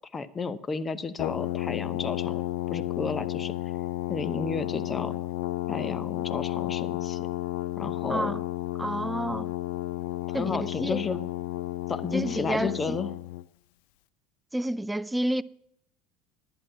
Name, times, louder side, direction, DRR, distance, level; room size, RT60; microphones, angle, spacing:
voice 1, 0.1-2.4 2.7-3.5 4.1-5.2 5.7-7.3 7.8-8.3 10.3-11.2 11.9-13.1, left 4 dB, 25° left, 0.9 m, -32 dB
Brass instrument, 1.2-13.5, left 16 dB, 65° left, 0.4 m, -32 dB
voice 2, 8.1-8.4 8.8-9.5 10.3-11.0 12.1-13.0 14.5-15.4, right 1 dB, 10° right, 0.4 m, -30 dB
11.0 x 9.0 x 5.7 m
hypercardioid pair, 75°, 0 cm